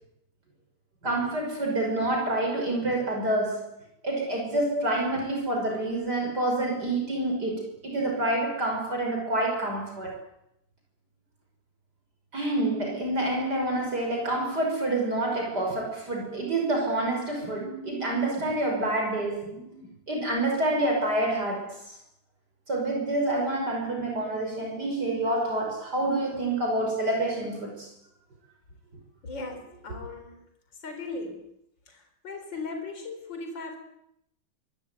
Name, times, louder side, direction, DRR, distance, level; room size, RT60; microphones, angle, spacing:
voice 1, 1.0-3.7 4.0-10.2 12.3-22.0 22.7-27.9, right 1 dB, 50° right, 6.4 m, -28 dB
voice 2, 29.2-30.4 30.8-31.4 31.9-33.8, left 3 dB, 60° left, 4.8 m, -38 dB
24.5 x 23.0 x 9.3 m
omnidirectional pair, 2.3 m